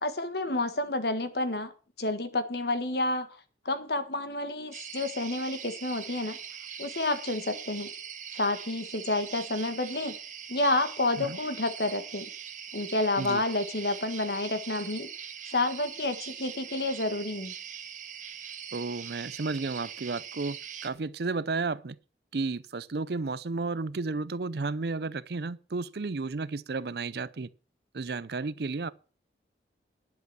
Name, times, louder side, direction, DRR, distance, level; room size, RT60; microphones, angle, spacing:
voice 1, 0.0-1.7 2.0-3.3 3.6-6.4 6.8-7.9 8.3-10.1 10.5-12.2 12.7-15.1 15.5-17.5, left 2 dB, 65° left, 1.6 m, -29 dB
sound 1, 4.7-20.9, right 8 dB, 45° right, 1.5 m, -42 dB
voice 2, 18.7-20.6 20.8-22.0 22.3-27.5 27.9-28.9, right 3 dB, 60° right, 0.6 m, -32 dB
10.5 x 8.1 x 6.2 m
head